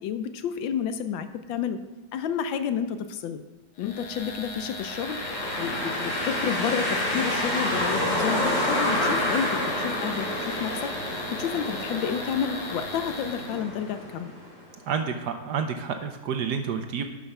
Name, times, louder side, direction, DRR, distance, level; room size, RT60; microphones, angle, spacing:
voice 1, 0.0-1.8 2.1-3.4 3.8-5.2 5.5-14.3, left 8 dB, 75° left, 10 dB, 1.4 m, -30 dB
sound 1, 3.8-13.6, left 2 dB, 60° left, 1.7 m, -39 dB
sound 2, 4.8-14.6, left 1 dB, 40° left, 2.8 m, -29 dB
voice 2, 14.9-17.0, right 6 dB, 65° right, 6 dB, 1.1 m, -29 dB
11.5 x 5.8 x 5.5 m, 1.2 s
omnidirectional pair, 2.2 m